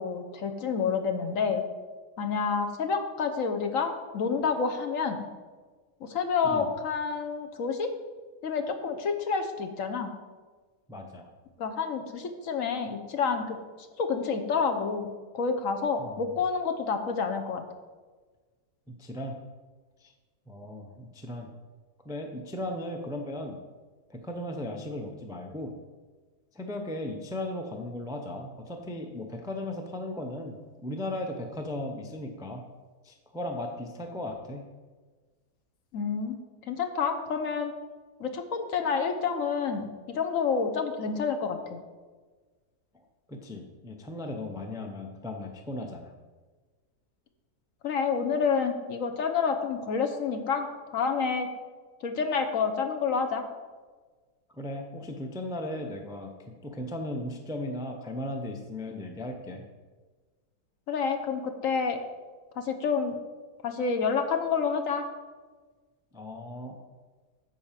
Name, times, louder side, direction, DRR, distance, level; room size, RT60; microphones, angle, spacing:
voice 1, 0.0-1.6 2.2-5.3 6.0-7.9 8.4-10.1 11.6-13.6 14.0-15.1 15.3-17.6 35.9-36.4 36.7-37.7 38.2-41.8 47.8-50.7 50.9-51.5 52.0-53.4 60.9-62.0 62.6-63.1 63.6-65.0, left 5 dB, 60° left, 5 dB, 1.2 m, -28 dB
voice 2, 10.9-11.3 16.0-16.3 18.9-19.4 20.0-20.1 20.5-21.5 22.0-23.6 24.1-25.7 26.5-32.6 33.0-34.6 43.3-46.1 54.5-56.3 56.6-59.6 66.1-66.8, left 1 dB, 5° right, 3 dB, 0.5 m, -36 dB
9.8 x 4.4 x 7.4 m, 1.4 s
omnidirectional pair, 1.6 m